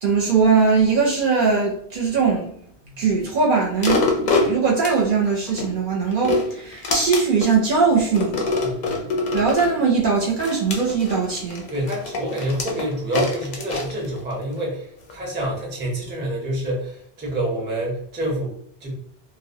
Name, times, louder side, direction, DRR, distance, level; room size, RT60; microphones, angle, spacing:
voice 1, 0.0-2.5 3.0-8.5 9.3-11.7, right 5 dB, 60° right, -2 dB, 0.6 m, -20 dB
sound 1, 3.8-5.7 6.1-7.5 8.1-9.7 10.4-14.6 15.1-15.2, left 3 dB, 55° left, 0.5 m, -25 dB
voice 2, 8.6-9.1 11.7-18.9, right 1 dB, 15° right, -1 dB, 0.5 m, -27 dB
2.2 x 2.1 x 2.6 m, 0.66 s
omnidirectional pair, 1.0 m